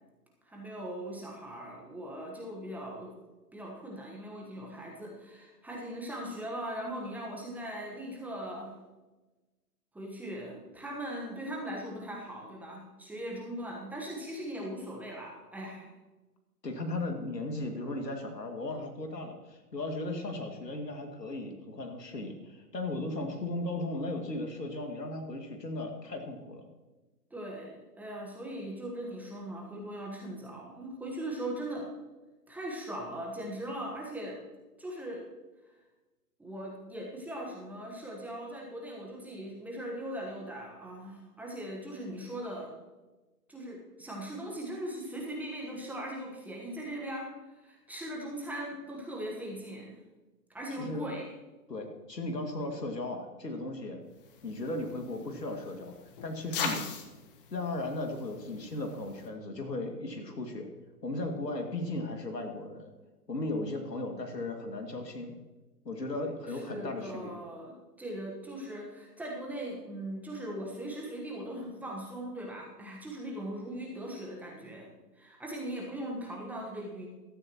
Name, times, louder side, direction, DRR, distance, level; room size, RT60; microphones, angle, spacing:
voice 1, 0.4-3.1 3.5-8.7 9.9-15.9 27.3-31.9 32.5-34.4 34.8-35.2 36.4-42.8 43.5-50.0 50.5-51.3 66.5-77.1, right 1 dB, 5° right, -2 dB, 1.3 m, -40 dB
voice 2, 16.6-26.7 50.8-51.0 51.7-54.0 54.4-56.0 56.2-56.8 57.5-60.7 61.0-62.9 63.3-65.4 65.8-67.3, left 2 dB, 90° left, 3 dB, 2.4 m, -36 dB
sound 1, 54.2-59.3, left 6 dB, 35° left, 1.4 m, -41 dB
15.5 x 13.0 x 3.0 m, 1.2 s
figure-of-eight pair, 135°, 48 cm